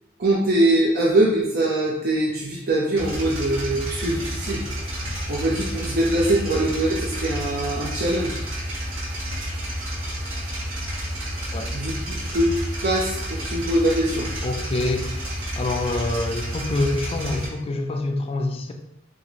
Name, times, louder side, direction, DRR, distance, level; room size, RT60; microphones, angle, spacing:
voice 1, 0.2-4.6 5.3-8.4 11.7-12.5 12.8-14.3, right 1 dB, 50° right, -3 dB, 0.5 m, -22 dB
sound 1, 3.0-17.5, equal, 75° right, 1.0 m, -30 dB
voice 2, 14.4-15.3 15.6-18.7, left 2 dB, 30° left, 4 dB, 0.3 m, -26 dB
3.7 x 2.4 x 3.0 m, 0.86 s
head